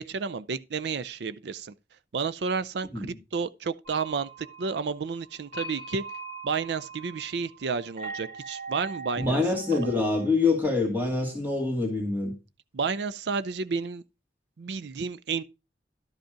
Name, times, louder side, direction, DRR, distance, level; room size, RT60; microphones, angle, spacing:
voice 1, 0.0-1.7 2.1-6.0 6.4-9.4 9.7-9.9 12.7-14.0 14.6-15.4, right 5 dB, 70° right, 0.5 m, -31 dB
sound 1, 3.9-10.3, right 3 dB, 50° right, 6.0 m, -41 dB
voice 2, 9.2-12.3, left 3 dB, 10° right, 2.2 m, -25 dB
12.0 x 5.2 x 5.0 m
head